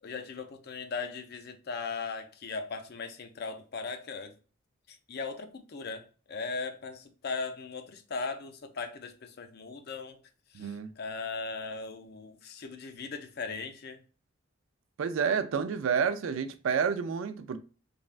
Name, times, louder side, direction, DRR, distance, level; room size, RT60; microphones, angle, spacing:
voice 1, 0.0-4.4 4.9-10.2 10.5-14.0, left 4 dB, 50° left, 0.5 m, -38 dB
voice 2, 10.5-10.9 15.0-17.6, right 6 dB, 80° right, 0.4 m, -29 dB
3.4 x 2.2 x 2.4 m
head